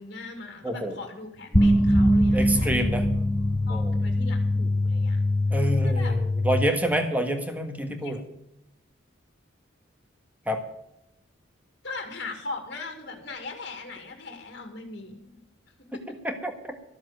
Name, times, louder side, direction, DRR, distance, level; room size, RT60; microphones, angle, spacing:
voice 1, 0.0-3.0 3.7-5.2 5.8-6.2 8.0-8.2 11.8-15.3 15.9-16.2, left 3 dB, 50° left, 3 dB, 2.2 m, -39 dB
voice 2, 0.6-1.0 2.3-3.1 3.7-3.9 5.5-8.3 10.5-10.6 16.2-16.7, right 1 dB, 10° right, 5 dB, 1.6 m, -27 dB
sound 1, 1.5-6.6, left 1 dB, 20° left, 0.8 m, -22 dB
13.5 x 7.3 x 8.0 m, 0.84 s
head